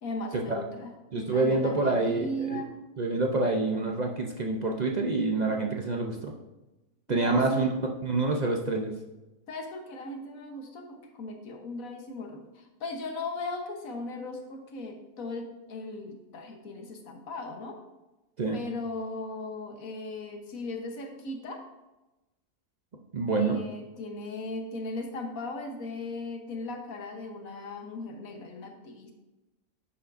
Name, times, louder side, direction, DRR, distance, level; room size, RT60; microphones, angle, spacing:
voice 1, 0.0-2.7 7.1-7.7 9.5-17.8 18.5-21.6 23.4-29.1, left 2 dB, 80° left, 4 dB, 1.5 m, -37 dB
voice 2, 1.1-2.6 3.0-6.3 7.1-7.7 8.0-8.9 18.4-18.6 23.1-23.6, right 3 dB, 45° right, 1 dB, 0.6 m, -27 dB
10.0 x 7.1 x 2.6 m, 1.0 s
omnidirectional pair, 1.5 m